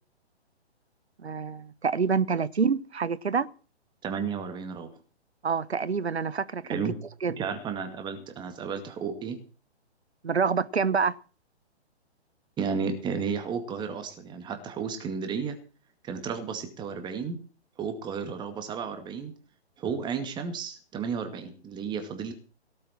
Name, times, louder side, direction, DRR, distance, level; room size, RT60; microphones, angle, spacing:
voice 1, 1.2-3.5 5.4-6.8 7.2-7.3 10.2-11.2, right 5 dB, 70° right, 1.1 m, -27 dB
voice 2, 4.0-4.9 6.7-7.0 7.4-9.4 12.6-15.6 16.0-17.4 17.8-19.3 19.8-22.3, right 6 dB, 15° right, 2.2 m, -33 dB
17.5 x 7.8 x 7.4 m
figure-of-eight pair, 125°, 33 cm